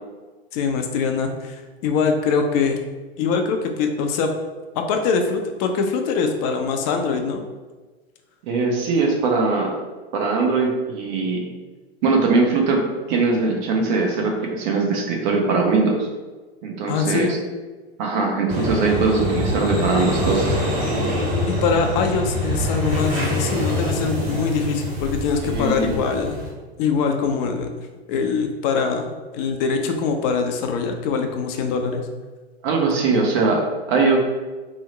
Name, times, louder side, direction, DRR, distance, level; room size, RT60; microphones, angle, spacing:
voice 1, 0.5-2.8 3.2-4.3 4.7-7.4 16.9-17.4 21.5-26.4 26.8-29.1 29.3-32.0, left 5 dB, 35° left, 5 dB, 0.4 m, -23 dB
voice 2, 8.4-9.8 10.1-11.5 12.0-12.8 13.1-16.1 16.6-17.4 18.0-20.6 25.4-26.0 32.6-34.2, right 3 dB, 45° right, 1 dB, 0.8 m, -21 dB
sound 1, 18.5-26.5, left 1 dB, 25° right, 1.5 m, -24 dB
2.8 x 2.1 x 3.7 m, 1.3 s
figure-of-eight pair, 95°, 32 cm